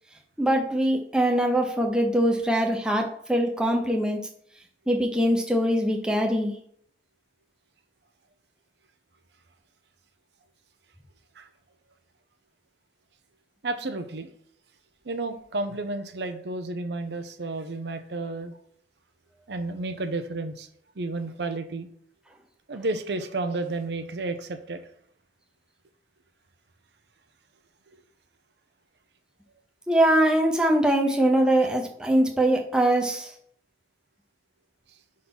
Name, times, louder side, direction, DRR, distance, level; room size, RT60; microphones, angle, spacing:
voice 1, 0.4-4.2 4.9-6.5 29.9-33.3, right 1 dB, 5° right, 1 dB, 0.7 m, -22 dB
voice 2, 13.6-14.3 15.0-18.6 19.5-20.7 21.0-21.9 22.7-24.9, right 2 dB, 75° right, 8 dB, 0.6 m, -31 dB
5.5 x 3.7 x 6.0 m, 0.64 s
head